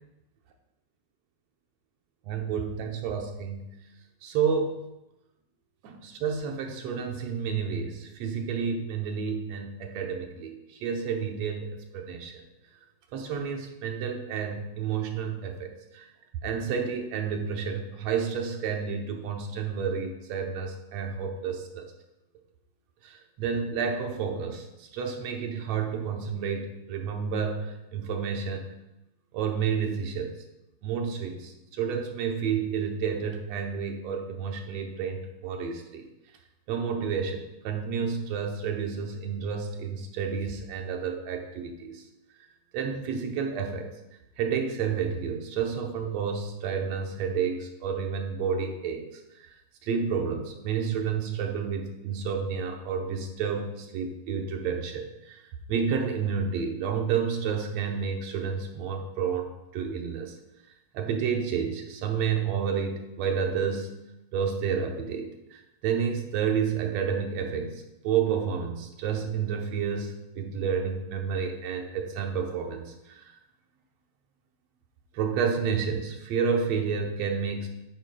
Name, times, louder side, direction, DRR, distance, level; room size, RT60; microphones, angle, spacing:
voice 1, 2.3-3.7 4.2-4.9 5.8-12.4 13.1-16.1 16.4-21.9 23.0-28.7 29.3-30.3 30.8-36.1 36.7-42.0 42.7-43.9 44.4-49.1 49.4-49.5 49.8-55.4 55.7-60.3 60.9-63.9 64.3-73.3 75.1-77.7, right 6 dB, 70° right, 3 dB, 1.8 m, -30 dB
9.1 x 8.9 x 2.3 m, 0.93 s
omnidirectional pair, 3.4 m